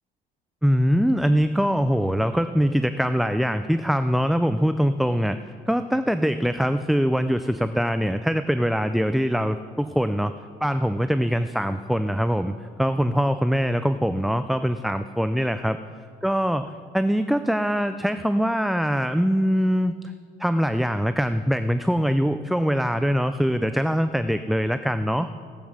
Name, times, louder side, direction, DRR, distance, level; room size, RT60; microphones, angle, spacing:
voice 1, 0.6-5.4 5.7-10.3 10.6-15.8 16.2-19.9 20.4-25.3, equal, ahead, 10 dB, 0.3 m, -23 dB
16.0 x 8.4 x 6.1 m, 2.1 s
cardioid pair, 110°, 17 cm